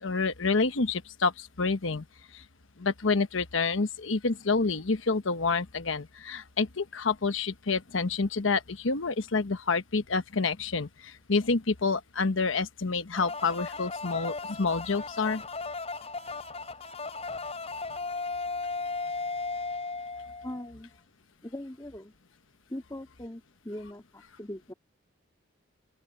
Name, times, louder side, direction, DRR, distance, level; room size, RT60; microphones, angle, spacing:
voice 1, 0.0-2.0 2.3-2.4 2.8-15.4, left 4 dB, 90° left, 1.1 m, -28 dB
sound 1, 13.1-20.7, left 3 dB, 35° left, 4.2 m, -36 dB
voice 2, 20.4-20.9 21.4-22.1 22.7-24.7, left 1 dB, 20° left, 2.6 m, -40 dB
open air
head